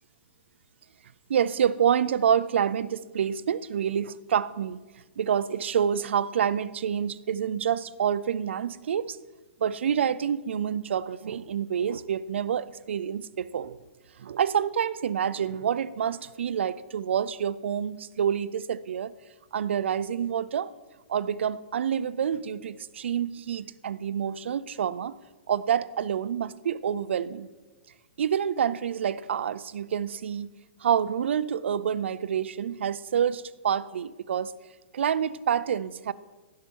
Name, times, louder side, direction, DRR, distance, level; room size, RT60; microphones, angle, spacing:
voice 1, 1.3-4.8 5.2-9.2 9.6-13.8 14.2-19.1 19.5-20.7 21.1-25.2 25.5-27.5 28.2-30.5 30.8-34.5 34.9-36.1, right 8 dB, 75° right, 0.5 m, -27 dB
16.0 x 5.7 x 4.6 m
hypercardioid pair, 170°, 6 cm